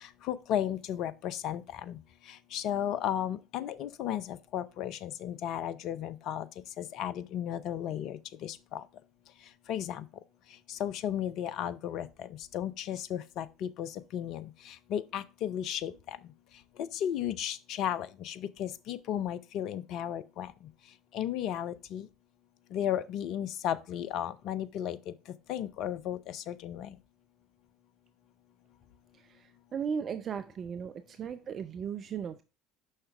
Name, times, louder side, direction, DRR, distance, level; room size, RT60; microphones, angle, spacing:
voice 1, 0.0-2.0 2.3-6.5 6.8-8.8 9.7-10.0 10.7-16.2 16.9-20.5 21.1-22.1 22.7-25.1 25.5-26.9, left 10 dB, 55° left, 0.5 m, -34 dB
voice 2, 29.2-32.4, right 7 dB, 40° right, 0.5 m, -37 dB
6.5 x 5.7 x 3.2 m
figure-of-eight pair, 60°, 0 cm